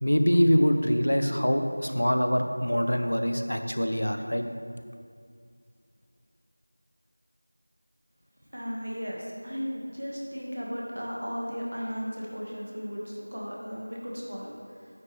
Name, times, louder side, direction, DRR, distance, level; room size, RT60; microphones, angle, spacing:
voice 1, 0.0-4.4, equal, 85° left, 6 dB, 0.7 m, -24 dB
voice 2, 8.5-14.9, equal, 90° right, -3 dB, 2.0 m, -35 dB
9.4 x 5.6 x 3.5 m, 2.2 s
figure-of-eight pair, 180°, 0 cm